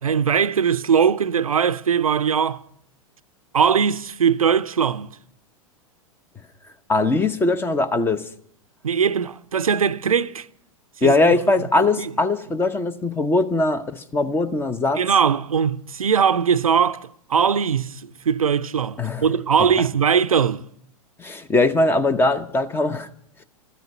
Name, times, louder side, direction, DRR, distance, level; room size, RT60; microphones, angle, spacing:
voice 1, 0.0-2.6 3.5-5.1 8.8-10.5 11.0-11.4 11.8-12.1 15.0-20.6, right 7 dB, 75° right, 0.6 m, -20 dB
voice 2, 6.9-8.2 11.0-15.0 19.0-19.2 21.2-23.1, left 2 dB, 10° left, 0.8 m, -20 dB
13.5 x 9.3 x 9.4 m
figure-of-eight pair, 100°, 18 cm